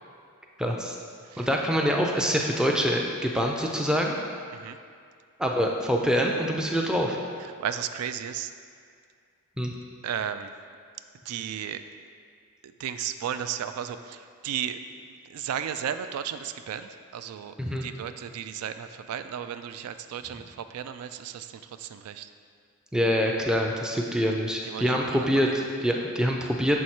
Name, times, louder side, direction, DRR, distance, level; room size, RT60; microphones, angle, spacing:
voice 1, 0.6-1.0 1.4-4.2 5.4-7.2 9.6-9.7 17.6-17.9 22.9-26.8, equal, 5° right, 0 dB, 0.4 m, -25 dB
voice 2, 7.6-8.5 10.0-10.5 11.3-11.8 12.6-14.8 15.1-17.5 17.8-22.3 24.6-25.5, right 9 dB, 85° right, 13 dB, 0.3 m, -34 dB
6.3 x 4.6 x 4.3 m, 2.2 s
head